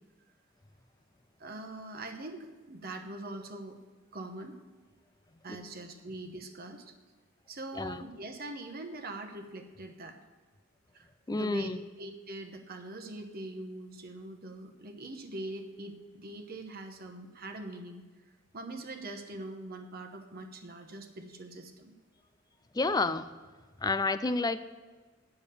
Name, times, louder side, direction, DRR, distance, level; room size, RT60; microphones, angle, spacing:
voice 1, 1.4-3.8 4.1-4.6 5.4-6.9 7.5-10.2 10.9-11.7 12.0-18.0 18.5-21.9, right 2 dB, 45° right, 5 dB, 1.0 m, -42 dB
voice 2, 11.3-11.8 22.7-23.3 23.8-24.6, left 3 dB, 20° left, 13 dB, 0.4 m, -30 dB
8.6 x 7.0 x 8.4 m, 1.3 s
head